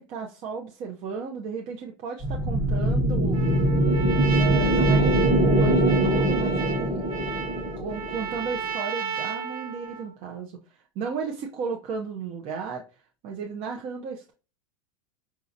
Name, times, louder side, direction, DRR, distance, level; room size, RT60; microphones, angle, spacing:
voice 1, 0.0-3.4 4.4-7.0 7.7-12.8 13.2-14.3, right 5 dB, 35° right, 1 dB, 0.6 m, -34 dB
sound 1, 2.2-8.7, right 1 dB, 10° right, 1.3 m, -22 dB
Trumpet, 3.3-10.1, right 6 dB, 75° right, 1.2 m, -33 dB
5.9 x 2.7 x 2.5 m, 0.32 s
supercardioid pair, 160°, 18 cm